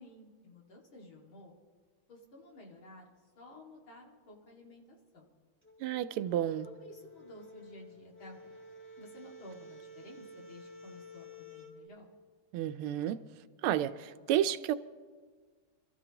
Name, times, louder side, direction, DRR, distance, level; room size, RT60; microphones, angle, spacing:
voice 1, 0.0-1.5 2.1-3.1 3.4-5.3 6.6-8.6 9.0-12.1, left 1 dB, 70° left, 2.9 m, -53 dB
sound 1, 5.6-11.8, left 1 dB, 5° left, 2.1 m, -52 dB
voice 2, 5.8-6.7 12.5-13.2 13.6-14.8, right 11 dB, 90° right, 1.5 m, -31 dB
26.5 x 14.0 x 2.9 m
omnidirectional pair, 2.3 m